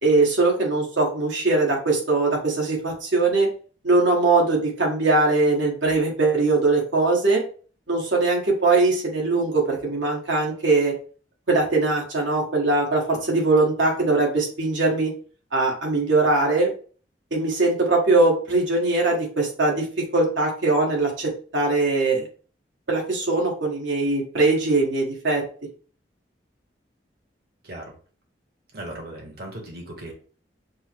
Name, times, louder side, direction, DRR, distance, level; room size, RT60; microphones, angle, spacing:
voice 1, 0.0-3.5 3.8-7.4 7.9-10.9 11.5-15.1 15.5-16.7 17.3-22.3 22.9-25.4, right 3 dB, 80° right, -1 dB, 1.5 m, -21 dB
voice 2, 28.7-30.1, right 1 dB, 55° right, 0 dB, 1.1 m, -37 dB
5.3 x 2.1 x 4.5 m, 0.41 s
head